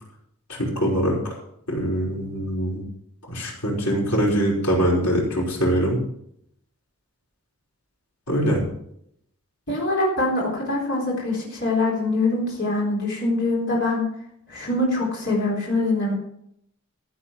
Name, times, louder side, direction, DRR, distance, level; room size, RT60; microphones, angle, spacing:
voice 1, 0.5-1.2 1.7-2.8 3.3-6.0 8.3-8.6, equal, 85° left, -3 dB, 5.3 m, -23 dB
voice 2, 9.7-14.1 14.5-16.1, left 2 dB, 50° left, -3 dB, 4.1 m, -23 dB
14.5 x 8.1 x 5.9 m, 0.72 s
head